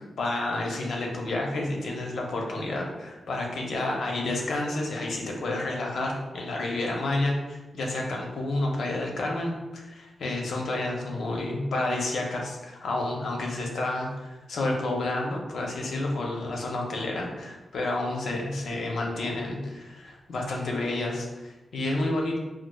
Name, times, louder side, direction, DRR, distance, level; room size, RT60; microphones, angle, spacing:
voice 1, 0.2-22.4, left 2 dB, 80° left, 0 dB, 0.6 m, -30 dB
4.5 x 2.3 x 2.2 m, 1.1 s
wide cardioid pair, 135°, 0 cm